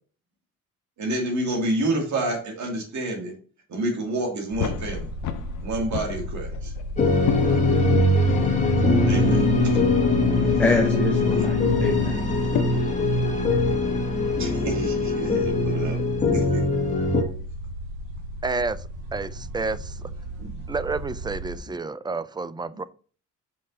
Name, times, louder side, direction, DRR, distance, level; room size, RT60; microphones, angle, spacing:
voice 1, 1.0-3.3 3.7-5.1 5.6-6.7 9.0-9.7 14.4-16.0 16.3-16.6 20.4-20.5, right 2 dB, 65° right, 1 dB, 2.3 m, -28 dB
sound 1, 4.5-21.6, right 1 dB, 85° right, 1.6 m, -36 dB
sound 2, 4.6-5.6 5.9-6.8 7.2-12.6, left 10 dB, 75° left, 0.7 m, -27 dB
sound 3, 7.0-17.2, left 1 dB, 25° left, 1.7 m, -22 dB
voice 2, 10.0-12.2, left 2 dB, 5° left, 1 dB, 1.0 m, -27 dB
voice 3, 18.4-18.8 19.1-20.0 20.7-22.8, right 3 dB, 15° right, 16 dB, 0.3 m, -29 dB
5.4 x 5.3 x 4.0 m, 0.42 s
cardioid pair, 90°, 30 cm